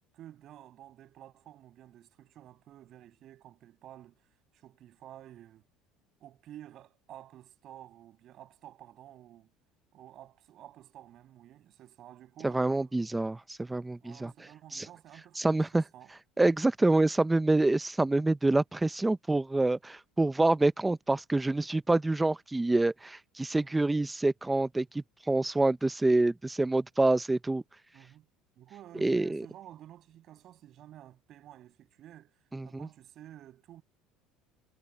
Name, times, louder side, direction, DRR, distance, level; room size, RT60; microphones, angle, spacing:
voice 1, 0.1-5.7 6.2-9.5 9.9-13.0 14.0-16.1 23.6-24.0 27.9-28.3 28.6-33.8, right 12 dB, 40° right, 6.6 m, -52 dB
voice 2, 12.4-14.3 14.7-14.9 15.4-15.8 16.4-27.6 29.0-29.4 32.5-32.9, right 2 dB, 5° right, 0.5 m, -27 dB
cardioid pair, 170°, 0 cm